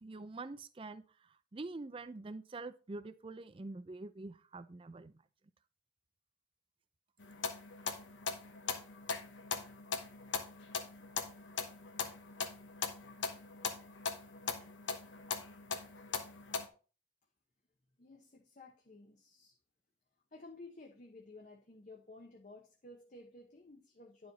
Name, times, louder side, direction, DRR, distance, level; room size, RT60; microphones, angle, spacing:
voice 1, 0.0-1.0 1.5-5.1, right 3 dB, 30° right, 13 dB, 0.4 m, -45 dB
sound 1, 7.2-16.7, left 5 dB, 80° left, 1.0 m, -40 dB
voice 2, 18.0-19.6 20.3-24.3, left 2 dB, 45° left, 1 dB, 0.9 m, -54 dB
10.5 x 4.8 x 4.0 m, 0.37 s
head